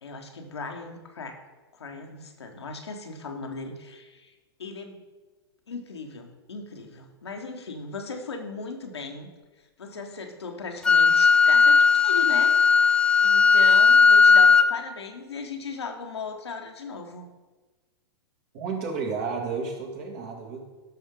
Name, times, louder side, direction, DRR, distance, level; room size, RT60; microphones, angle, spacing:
voice 1, 0.0-1.4 1.7-4.3 4.6-5.0 5.7-9.3 9.8-12.6 12.9-17.3, left 4 dB, 85° left, 3 dB, 1.3 m, -37 dB
Wind instrument woodwind instrument, 10.8-14.7, left 5 dB, 5° left, 0.4 m, -17 dB
voice 2, 18.5-20.6, right 5 dB, 50° right, 1 dB, 2.4 m, -31 dB
11.5 x 6.3 x 3.7 m, 1.3 s
hypercardioid pair, 110°, 14 cm